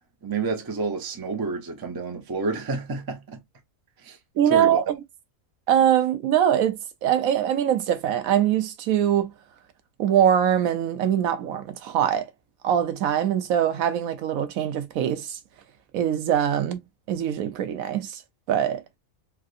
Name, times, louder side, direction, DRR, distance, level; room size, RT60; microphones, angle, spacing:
voice 1, 0.2-3.4 4.0-4.2 4.5-4.8, right 3 dB, 25° right, 0.5 m, -29 dB
voice 2, 4.4-4.8 5.7-9.3 10.0-12.3 12.6-15.4 15.9-16.8 17.1-18.2 18.5-18.8, right 10 dB, 80° right, 1.1 m, -23 dB
3.3 x 2.6 x 2.4 m
omnidirectional pair, 1.4 m